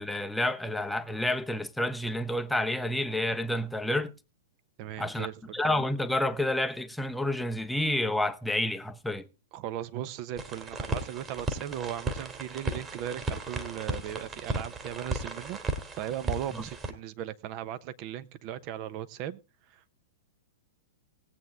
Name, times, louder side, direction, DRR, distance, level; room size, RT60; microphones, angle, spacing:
voice 1, 0.0-4.1 5.0-5.3 5.5-9.3 16.5-16.6, left 1 dB, 5° left, 0.8 m, -29 dB
voice 2, 4.8-5.6 9.5-15.6 15.9-19.4 19.7-20.0, right 11 dB, 45° right, 1.0 m, -37 dB
sound 1, 10.4-16.9, right 2 dB, 20° right, 2.3 m, -35 dB
20.0 x 8.1 x 3.6 m
hypercardioid pair, 115°, 0 cm